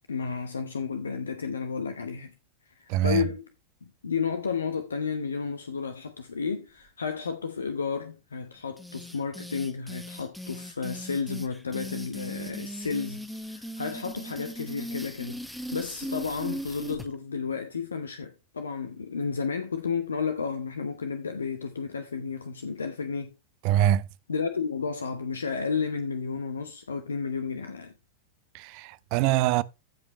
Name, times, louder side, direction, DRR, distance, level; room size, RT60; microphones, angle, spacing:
voice 1, 0.1-2.3 2.6-3.4 3.8-15.4 15.7-23.3 24.3-27.9, left 5 dB, 70° left, 0.9 m, -32 dB
voice 2, 2.9-3.2 23.6-24.1 28.5-29.6, right 12 dB, 45° right, 0.6 m, -24 dB
sound 1, 8.8-17.1, equal, ahead, 1.2 m, -38 dB
15.0 x 5.2 x 2.9 m
figure-of-eight pair, 90°, 0 cm